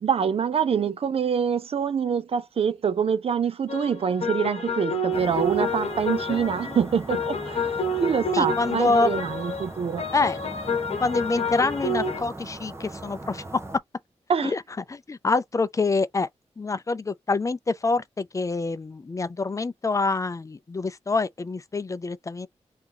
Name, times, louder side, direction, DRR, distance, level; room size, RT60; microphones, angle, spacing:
voice 1, 0.0-10.0 14.3-14.5, right 7 dB, 60° right, 0.5 m, -25 dB
sound 1, 3.7-12.2, left 2 dB, 65° left, 0.9 m, -29 dB
sound 2, 5.1-13.8, right 2 dB, 25° right, 0.8 m, -39 dB
voice 2, 8.3-9.1 10.1-10.4 11.0-13.6 14.4-14.6 14.9-16.3 16.6-22.5, left 3 dB, 25° left, 0.5 m, -26 dB
2.9 x 2.4 x 3.8 m
wide cardioid pair, 115°, 12 cm